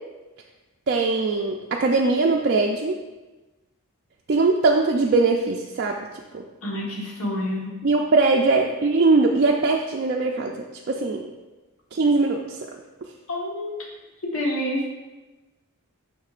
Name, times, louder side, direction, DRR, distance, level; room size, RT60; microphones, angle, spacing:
voice 1, 0.9-3.0 4.3-6.0 6.3-6.4 7.8-10.5 10.9-11.2 11.9-12.6, right 3 dB, 50° right, 0 dB, 0.4 m, -21 dB
voice 2, 6.6-7.7 13.3-13.7 14.2-14.9, left 1 dB, 75° left, -2 dB, 1.3 m, -27 dB
6.5 x 5.9 x 2.5 m, 1.2 s
head